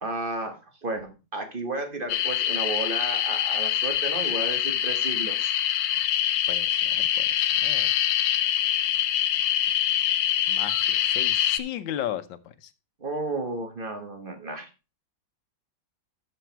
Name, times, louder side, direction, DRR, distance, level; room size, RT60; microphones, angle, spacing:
voice 1, 0.0-5.5 13.0-14.7, right 2 dB, 30° right, 6 dB, 1.3 m, -33 dB
sound 1, 2.1-11.6, left 11 dB, 65° left, 1.0 m, -25 dB
voice 2, 6.5-7.9 10.5-12.7, left 11 dB, 90° left, 12 dB, 1.6 m, -36 dB
12.0 x 5.1 x 4.5 m, 0.30 s
omnidirectional pair, 2.0 m